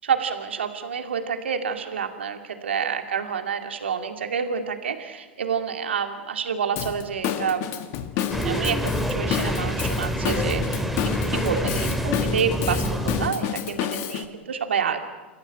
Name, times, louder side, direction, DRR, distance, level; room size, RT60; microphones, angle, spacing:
voice 1, 0.0-7.8 8.4-15.0, right 6 dB, 85° right, 6 dB, 2.3 m, -28 dB
Drum kit / Drum, 6.8-14.3, left 10 dB, 50° left, 1.9 m, -30 dB
sound 1, 8.3-13.3, equal, ahead, 2.4 m, -26 dB
29.0 x 14.5 x 9.0 m, 1.3 s
hypercardioid pair, 100°, 6 cm